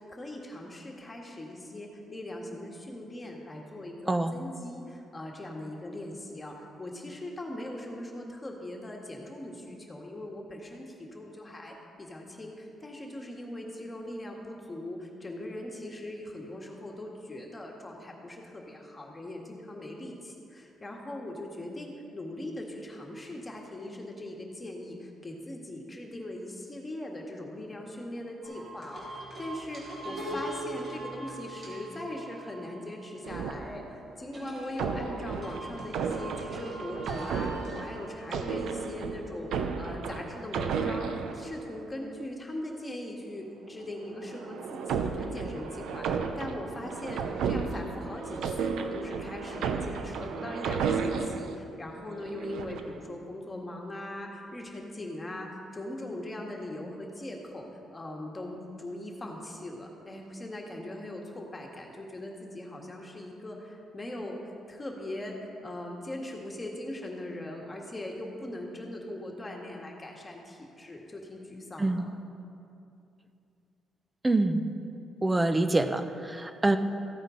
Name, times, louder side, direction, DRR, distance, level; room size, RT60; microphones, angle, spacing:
voice 1, 0.0-57.7 57.9-65.4 65.6-72.1, left 1 dB, 20° left, 0 dB, 1.7 m, -40 dB
sound 1, 28.4-33.1 34.3-38.4, right 1 dB, 45° right, 3.0 m, -41 dB
sound 2, 33.2-34.2 34.7-42.0 43.9-51.6 52.2-53.0, right 5 dB, 80° right, 0.7 m, -33 dB
voice 2, 74.2-74.6 75.2-76.8, right 2 dB, 15° right, 9 dB, 0.7 m, -25 dB
14.5 x 8.8 x 3.9 m, 2.7 s
cardioid pair, 90°, 0 cm